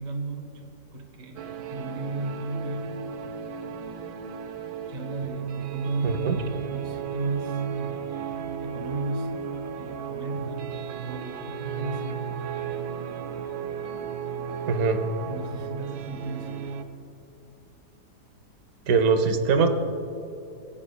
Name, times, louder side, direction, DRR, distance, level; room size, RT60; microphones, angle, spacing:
voice 1, 0.0-1.4 1.7-2.9 4.9-9.4 9.7-12.4 15.3-16.8, right 2 dB, 45° right, 3 dB, 0.6 m, -36 dB
sound 1, 1.4-16.8, right 7 dB, 90° right, 1.3 m, -34 dB
voice 2, 6.0-6.4 14.7-15.0 18.9-19.7, right 4 dB, 65° right, 8 dB, 1.1 m, -22 dB
20.0 x 8.8 x 2.2 m, 2.8 s
omnidirectional pair, 1.8 m